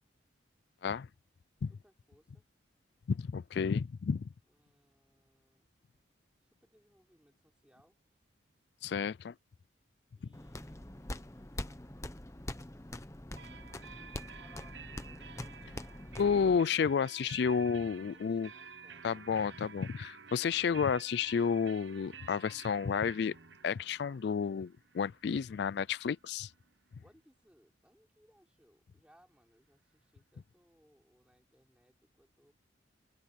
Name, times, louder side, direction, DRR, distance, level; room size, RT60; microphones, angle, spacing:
voice 1, 1.7-2.4 4.5-5.7 6.4-8.0 10.1-11.7 13.9-16.3 17.2-17.8 18.1-19.3 27.0-32.5, equal, 5° right, 4.5 m, -67 dB
voice 2, 3.1-4.2 8.8-9.3 16.2-18.5 19.0-23.3 23.6-26.5, left 6 dB, 60° left, 0.3 m, -31 dB
sound 1, 10.3-16.6, left 1 dB, 15° left, 0.9 m, -44 dB
sound 2, 13.4-26.9, right 6 dB, 70° right, 1.2 m, -52 dB
open air
head